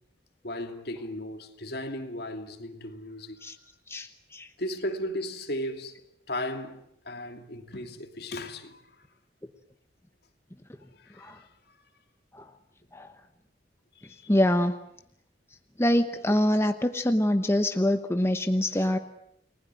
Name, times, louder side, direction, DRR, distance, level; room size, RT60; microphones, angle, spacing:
voice 1, 0.4-3.4 4.6-8.8 10.9-11.8 13.9-14.3 18.8-18.9, left 1 dB, 60° left, 2.7 m, -36 dB
voice 2, 3.9-4.5 11.2-11.4 12.3-12.5 12.9-13.1 14.3-14.7 15.8-19.0, left 1 dB, 15° left, 1.0 m, -25 dB
30.0 x 20.0 x 9.1 m
head